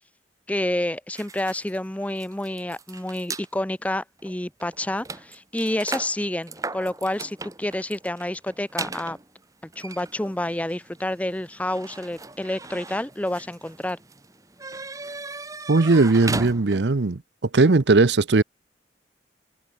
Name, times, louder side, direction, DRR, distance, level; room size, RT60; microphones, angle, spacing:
voice 1, 0.5-9.2 9.8-14.0, left 1 dB, 10° left, 0.6 m, -29 dB
sound 1, 1.1-3.5 4.2-4.3 4.6-17.1, right 3 dB, 20° right, 1.7 m, -37 dB
voice 2, 15.7-17.2 17.5-18.4, right 3 dB, 75° right, 0.8 m, -18 dB
head